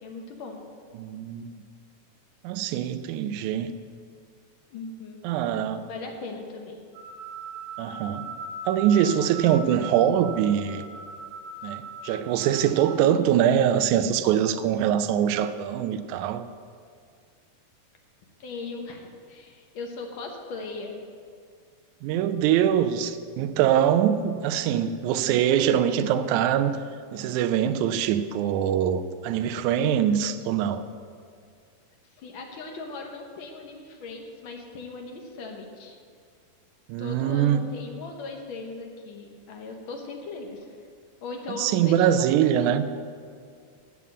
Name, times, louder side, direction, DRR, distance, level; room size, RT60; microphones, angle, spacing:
voice 1, 0.0-0.6 4.7-5.2 5.9-6.8 18.4-21.0 32.2-36.0 37.0-40.8 41.2-42.3, left 3 dB, 70° left, 2 dB, 1.2 m, -38 dB
voice 2, 1.0-1.5 2.4-3.7 5.2-5.9 7.8-8.3 8.7-10.9 11.6-16.5 22.0-26.7 27.1-30.8 36.9-37.6 41.6-42.8, right 9 dB, 80° right, 9 dB, 1.9 m, -23 dB
sound 1, 6.9-13.2, right 3 dB, 50° right, 1.5 m, -39 dB
8.5 x 7.0 x 8.4 m, 2.1 s
omnidirectional pair, 3.6 m